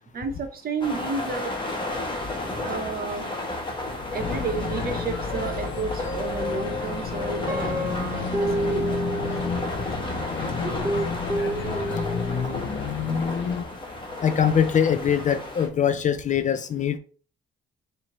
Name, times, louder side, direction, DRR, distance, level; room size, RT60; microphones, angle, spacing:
voice 1, 0.1-1.5 2.6-3.3 4.1-8.9, right 4 dB, 50° right, 6 dB, 0.9 m, -31 dB
sound 1, 0.8-15.7, left 2 dB, 25° left, 1.2 m, -33 dB
sound 2, 4.2-13.6, left 5 dB, 70° left, 0.7 m, -31 dB
Guitar, 7.5-9.9 10.6-12.6, right 1 dB, 15° right, 0.5 m, -29 dB
voice 2, 14.2-17.0, left 8 dB, 40° left, 11 dB, 0.4 m, -22 dB
4.3 x 2.8 x 3.0 m, 0.41 s
cardioid pair, 90°, 20 cm